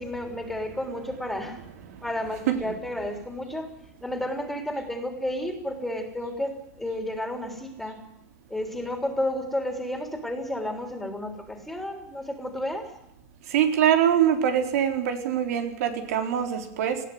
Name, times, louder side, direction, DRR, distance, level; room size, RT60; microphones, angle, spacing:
voice 1, 0.0-1.6 2.0-3.7 4.0-8.0 8.5-12.9, left 1 dB, ahead, 5 dB, 3.3 m, -32 dB
voice 2, 13.5-17.0, right 9 dB, 90° right, 6 dB, 4.0 m, -23 dB
20.0 x 15.5 x 9.6 m, 0.81 s
supercardioid pair, 170°, 8 cm